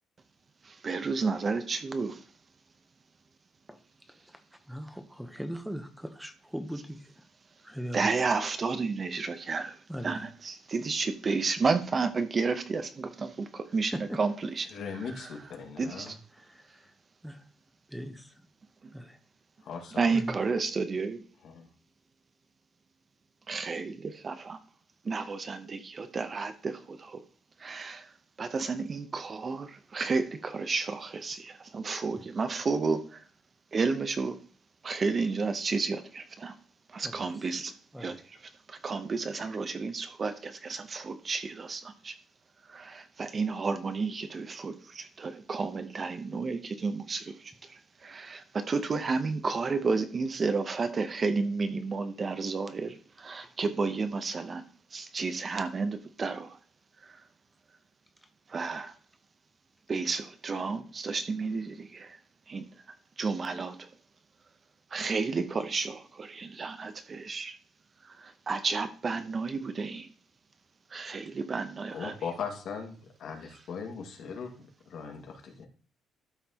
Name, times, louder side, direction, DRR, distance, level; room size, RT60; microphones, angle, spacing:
voice 1, 0.6-2.2 7.9-13.9 14.2-14.7 15.0-15.3 15.8-16.2 18.8-18.9 20.0-21.2 23.5-24.6 25.0-27.2 27.6-28.1 28.4-33.3 33.7-34.4 34.8-36.6 36.9-37.7 38.0-38.1 38.7-42.2 42.7-54.6 54.9-56.6 57.0-57.2 58.5-58.9 59.9-62.2 62.5-62.7 63.2-63.9 64.9-67.6 68.0-70.1 70.9-72.1, right 4 dB, 35° right, 9 dB, 0.8 m, -31 dB
voice 2, 3.7-7.2 7.6-8.2 9.9-10.2 13.9-14.2 16.1-16.9 17.2-17.5 17.9-18.5 18.9-19.2 20.1-20.4 32.2-32.3 37.0-37.4 37.9-38.2 53.4-53.5 58.2-58.3, equal, 5° right, 7 dB, 0.9 m, -41 dB
voice 3, 14.7-16.1 19.6-20.0 21.4-21.7 71.9-75.7, left 6 dB, 65° left, 2 dB, 1.9 m, -39 dB
12.5 x 5.8 x 2.9 m, 0.39 s
cardioid pair, 130°, 0 cm